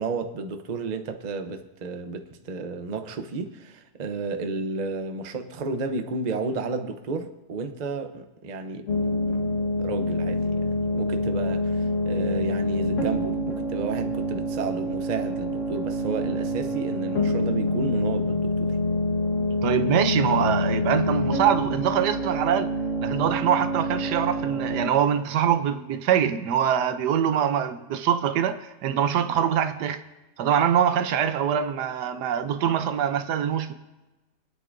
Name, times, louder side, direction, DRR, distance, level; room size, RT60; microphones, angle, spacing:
voice 1, 0.0-9.1 9.8-18.8, right 4 dB, 40° right, 0.6 m, -32 dB
sound 1, 8.9-24.9, left 1 dB, 50° left, 1.7 m, -26 dB
voice 2, 19.6-22.7 23.0-30.0 30.4-33.7, right 9 dB, 85° right, 1.3 m, -24 dB
24.5 x 9.4 x 2.6 m
omnidirectional pair, 1.7 m